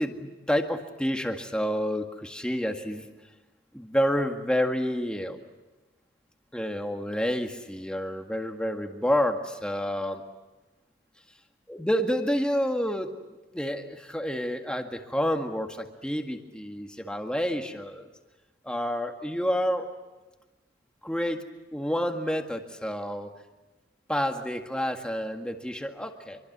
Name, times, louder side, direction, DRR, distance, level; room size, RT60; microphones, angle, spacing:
voice 1, 0.0-3.1 3.7-5.4 6.5-10.2 11.7-13.2 13.5-18.1 18.6-19.9 21.0-21.4 21.7-23.3 24.1-26.4, equal, 5° left, 4 dB, 1.8 m, -29 dB
26.0 x 24.0 x 8.1 m, 1.1 s
head